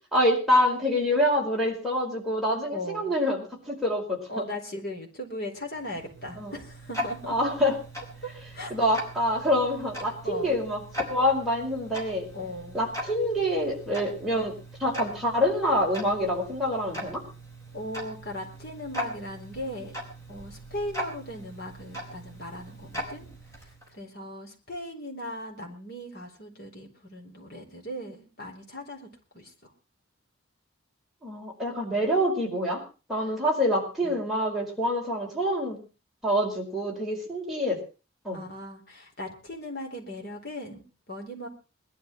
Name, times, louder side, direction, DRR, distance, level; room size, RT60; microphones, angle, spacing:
voice 1, 0.1-4.5 6.4-6.5 7.3-7.8 8.7-10.8 11.1-12.3 12.7-17.2 31.2-32.8 33.1-35.8 36.2-37.8 38.2-38.4, equal, ahead, -3 dB, 4.9 m, -26 dB
voice 2, 2.7-3.2 4.3-7.4 8.2-8.7 10.2-10.6 12.3-12.8 17.7-20.0 20.3-23.3 23.5-29.1 29.3-29.7 34.0-34.2 38.3-41.5, left 1 dB, 50° left, 1 dB, 4.2 m, -38 dB
Tick-tock, 5.7-24.0, equal, 15° left, 4.6 m, -40 dB
20.5 x 12.0 x 4.5 m, 0.34 s
head